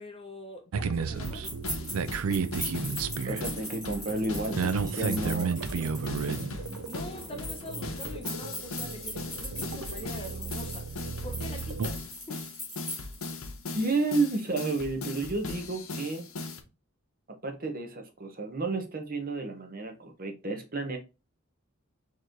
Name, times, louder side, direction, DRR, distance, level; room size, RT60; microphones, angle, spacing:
voice 1, 0.0-1.5 6.9-10.9 11.2-12.4, left 2 dB, 25° left, 0.7 m, -44 dB
sound 1, 0.7-11.9, right 5 dB, 85° right, 0.4 m, -33 dB
sound 2, 1.1-16.6, left 3 dB, 75° left, 0.9 m, -39 dB
sound 3, 1.2-13.3, equal, ahead, 2.0 m, -41 dB
voice 2, 3.2-5.9 13.7-16.3 17.3-21.0, right 3 dB, 40° right, 0.9 m, -31 dB
4.5 x 3.1 x 3.8 m
head